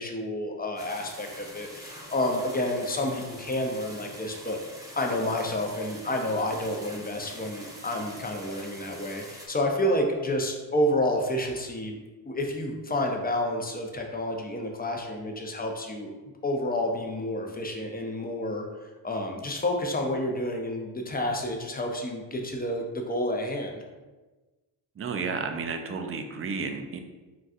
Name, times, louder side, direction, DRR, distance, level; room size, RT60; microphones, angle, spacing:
voice 1, 0.0-4.6 5.0-12.0 12.2-16.1 16.4-23.8, left 1 dB, 20° left, 2 dB, 0.6 m, -29 dB
sound 1, 0.8-9.5, equal, 10° right, 0.8 m, -45 dB
voice 2, 25.0-27.0, right 4 dB, 30° right, 6 dB, 0.4 m, -32 dB
4.0 x 2.4 x 2.4 m, 1.2 s
supercardioid pair, 50°, 45 cm